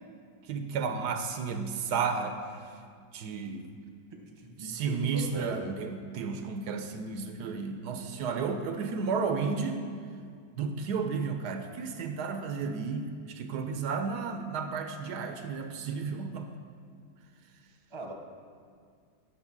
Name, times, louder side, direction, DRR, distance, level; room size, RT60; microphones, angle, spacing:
voice 1, 0.5-2.4 3.1-3.7 4.6-9.8 10.6-16.5, right 5 dB, 80° right, 7 dB, 1.2 m, -32 dB
voice 2, 4.1-5.7 17.9-18.1, right 2 dB, 20° right, 1 dB, 0.8 m, -41 dB
8.9 x 6.2 x 5.9 m, 2.1 s
omnidirectional pair, 1.8 m